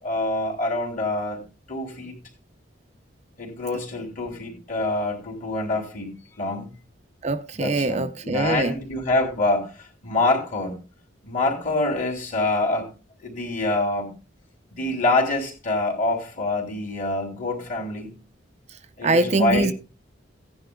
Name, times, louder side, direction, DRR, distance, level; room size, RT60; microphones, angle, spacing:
voice 1, 0.0-2.2 3.4-6.7 7.5-10.8 11.2-12.9 13.2-14.1 14.7-18.2 19.0-19.7, left 2 dB, 45° left, 3.1 m, -26 dB
voice 2, 7.2-8.7 19.0-19.7, right 2 dB, 35° right, 0.5 m, -23 dB
16.5 x 10.5 x 2.3 m
head